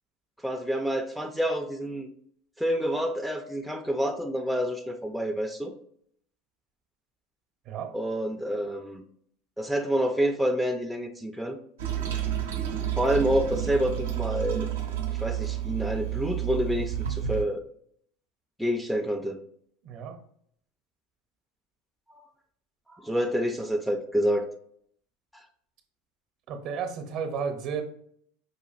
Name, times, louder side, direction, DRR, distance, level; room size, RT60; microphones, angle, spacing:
voice 1, 0.4-2.1 2.6-5.7 7.9-9.0 9.6-11.6 13.0-14.7 15.2-17.6 18.6-19.4 22.9-24.5, equal, ahead, 6 dB, 0.4 m, -28 dB
Toilet flush, 11.8-17.4, right 11 dB, 90° right, 0.6 m, -30 dB
voice 2, 19.8-20.2 26.5-27.8, right 6 dB, 50° right, 6 dB, 0.7 m, -33 dB
4.9 x 2.5 x 2.4 m, 0.66 s
supercardioid pair, 110°, 0 cm